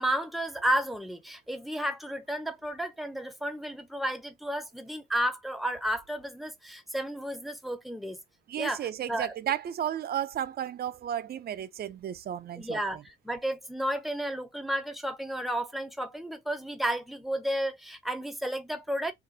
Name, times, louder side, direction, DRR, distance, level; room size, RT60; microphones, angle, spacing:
voice 1, 0.0-8.2 8.6-9.3 12.6-13.0 13.2-19.1, right 1 dB, ahead, 0.7 m, -32 dB
voice 2, 8.5-13.0, right 10 dB, 50° right, 0.5 m, -33 dB
2.9 x 2.4 x 2.7 m
cardioid pair, 90°, 20 cm